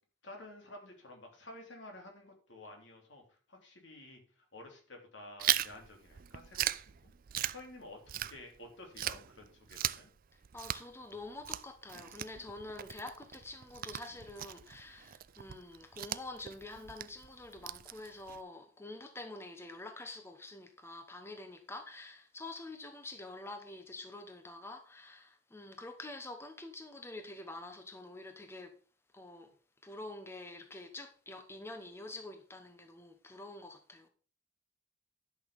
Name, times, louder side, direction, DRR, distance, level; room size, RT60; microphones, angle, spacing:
voice 1, 0.2-3.2 3.5-4.2 4.5-7.1 7.5-10.1, left 2 dB, 70° left, 3.4 m, -51 dB
Chewing mastication, 5.4-8.7 9.0-18.4, right 12 dB, 50° right, 0.4 m, -38 dB
voice 2, 10.5-28.7 29.1-29.5 29.8-34.1, left 2 dB, 15° left, 0.9 m, -47 dB
11.5 x 6.3 x 5.2 m
head